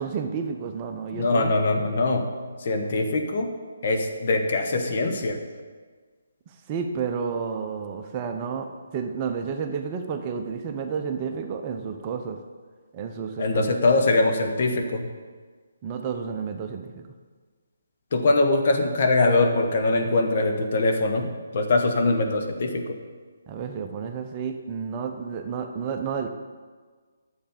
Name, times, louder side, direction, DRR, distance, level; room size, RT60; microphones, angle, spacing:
voice 1, 0.0-1.5 6.5-8.7 8.9-12.4 12.9-13.9 15.8-17.1 23.5-26.3, right 6 dB, 25° right, 5 dB, 0.8 m, -31 dB
voice 2, 1.1-2.3 2.6-3.6 3.8-5.4 13.4-15.1 18.1-23.0, left 2 dB, 50° left, 4 dB, 1.2 m, -22 dB
10.5 x 7.2 x 5.1 m, 1.5 s
figure-of-eight pair, 145°, 0 cm